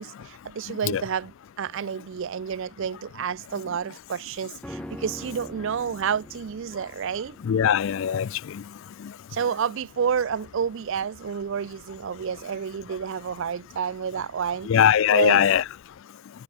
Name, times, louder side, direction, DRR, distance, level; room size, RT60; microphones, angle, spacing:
voice 1, 0.0-7.4 9.3-14.7 15.1-15.5, right 7 dB, 55° right, 0.4 m, -29 dB
sound 1, 4.6-14.0 14.3-14.4, equal, 5° left, 1.2 m, -45 dB
voice 2, 7.4-8.6 14.7-15.6, left 9 dB, 55° left, 0.3 m, -21 dB
head